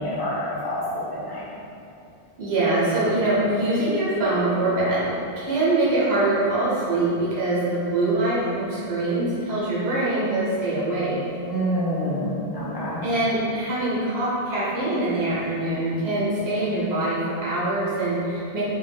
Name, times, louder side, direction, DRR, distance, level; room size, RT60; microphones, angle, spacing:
voice 1, 0.0-1.4 11.5-13.0, equal, 25° left, -10 dB, 0.7 m, -27 dB
voice 2, 2.4-11.2 13.0-18.6, right 2 dB, 80° right, -8 dB, 1.0 m, -24 dB
2.5 x 2.2 x 3.3 m, 2.6 s
omnidirectional pair, 1.0 m